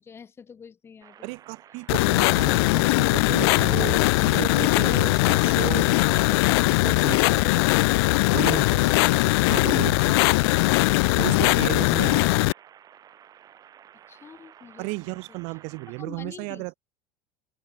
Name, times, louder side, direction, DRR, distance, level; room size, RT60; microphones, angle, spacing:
voice 1, 0.0-1.3 6.2-6.4 14.1-15.4 16.0-16.7, left 6 dB, 20° left, 4.2 m, -45 dB
sound 1, 1.0-16.0, right 10 dB, 30° right, 5.1 m, -52 dB
voice 2, 1.2-6.4 6.8-7.2 8.3-8.9 9.5-10.3 11.2-12.5 14.8-16.7, right 33 dB, 55° right, 0.8 m, -34 dB
sound 2, 1.9-12.5, left 23 dB, 80° left, 0.4 m, -20 dB
open air
cardioid pair, 160°, 13 cm